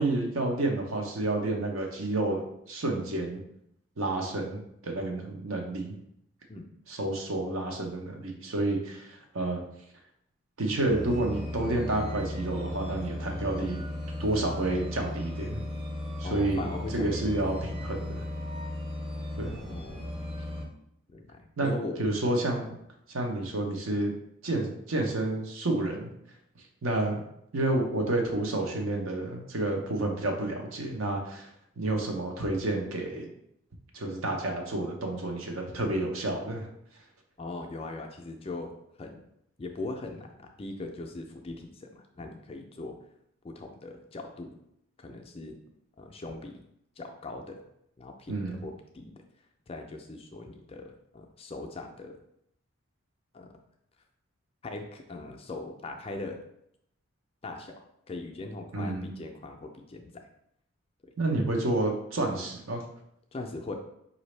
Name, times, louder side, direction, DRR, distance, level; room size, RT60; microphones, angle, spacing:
voice 1, 0.0-3.4 4.0-6.0 6.9-9.6 10.6-13.8 14.2-15.7 16.2-16.6 16.9-18.3 19.4-19.6 21.6-21.7 22.0-22.8 23.1-24.1 24.4-26.1 26.8-27.2 27.5-31.5 31.8-33.3 33.9-36.7 48.3-48.6 58.7-59.1 61.2-62.8, right 2 dB, 70° right, 2 dB, 0.7 m, -30 dB
sound 1, 10.9-20.6, left 1 dB, 25° right, 0.6 m, -36 dB
voice 2, 16.2-17.3 19.4-20.0 21.1-22.1 22.7-22.8 37.4-39.2 39.6-43.0 43.4-44.5 45.0-45.6 46.0-46.6 47.0-47.6 48.0-49.1 49.7-52.2 53.3-53.5 54.6-56.4 57.4-57.7 58.1-60.2 63.3-63.7, left 2 dB, 25° left, 3 dB, 0.3 m, -40 dB
4.9 x 2.6 x 3.2 m, 0.77 s
head